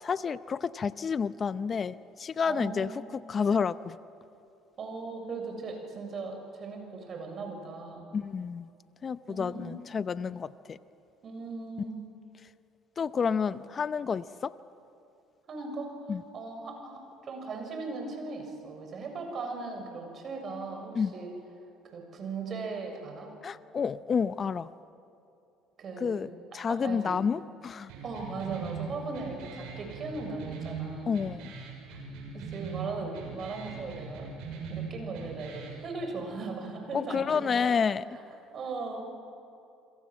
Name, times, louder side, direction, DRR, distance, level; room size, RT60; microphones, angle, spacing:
voice 1, 0.0-4.0 8.1-8.7 9.0-10.8 13.0-14.5 16.1-16.2 20.9-21.1 23.4-24.7 26.0-26.3 26.5-27.9 31.1-31.5 36.9-38.0, left 6 dB, 40° left, 15 dB, 0.7 m, -30 dB
voice 2, 2.5-3.1 4.8-8.1 9.3-9.7 10.2-10.3 11.2-12.0 15.5-15.9 16.3-21.3 21.9-23.3 25.8-26.2 26.7-27.1 28.0-31.1 32.3-34.3 34.7-37.8 38.5-39.0, right 4 dB, 45° right, 3 dB, 6.9 m, -38 dB
sound 1, 27.9-35.9, right 5 dB, 75° right, 6.9 m, -41 dB
29.5 x 22.5 x 7.7 m, 2.6 s
supercardioid pair, 75°, 0 cm